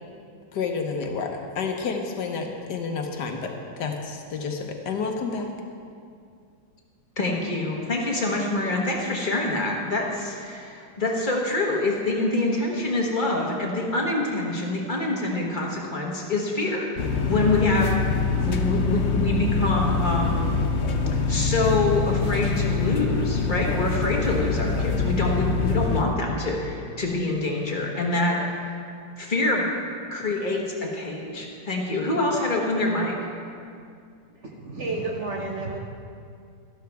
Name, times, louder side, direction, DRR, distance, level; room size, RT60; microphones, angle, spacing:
voice 1, 0.5-5.5, left 5 dB, 70° left, 3 dB, 1.5 m, -30 dB
voice 2, 7.2-16.9 17.3-18.1 18.4-20.5 21.3-28.6 29.2-29.6 30.1-33.1, left 2 dB, 30° left, -1 dB, 1.4 m, -25 dB
sound 1, 17.0-26.0, left 4 dB, 55° left, 0.8 m, -24 dB
voice 3, 34.4-35.8, right 3 dB, 50° right, 0 dB, 1.0 m, -31 dB
13.0 x 12.5 x 3.5 m, 2.3 s
omnidirectional pair, 1.9 m